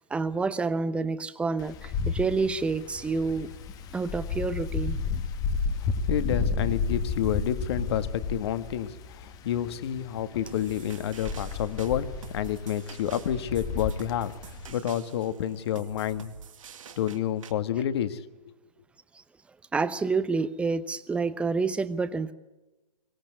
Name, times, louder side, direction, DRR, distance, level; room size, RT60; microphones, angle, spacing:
voice 1, 0.0-3.5 3.9-5.0 19.7-22.3, right 4 dB, 5° right, 14 dB, 0.9 m, -28 dB
Wind, 1.6-14.7, left 5 dB, 20° left, 1.4 m, -32 dB
voice 2, 5.8-16.3 17.0-18.2, left 10 dB, 40° left, 12 dB, 1.6 m, -29 dB
sound 1, 10.5-17.5, right 6 dB, 55° right, 2.2 m, -47 dB
24.0 x 18.5 x 9.6 m, 1.1 s
figure-of-eight pair, 125°, 20 cm